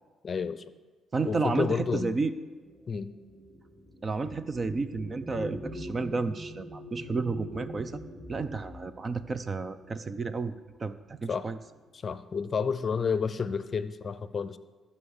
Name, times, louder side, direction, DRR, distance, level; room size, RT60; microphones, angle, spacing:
voice 1, 0.2-0.6 1.2-2.1 2.9-3.1 11.3-11.5 12.0-14.6, left 5 dB, 45° left, 14 dB, 0.6 m, -30 dB
voice 2, 1.1-2.3 4.0-8.0 8.3-10.5 10.8-11.6, right 4 dB, 35° right, 13 dB, 0.6 m, -31 dB
sound 1, 2.4-10.8 11.7-11.8 12.2-12.8, equal, 15° right, 3.8 m, -44 dB
14.0 x 5.6 x 6.6 m, 1.3 s
supercardioid pair, 70°, 0 cm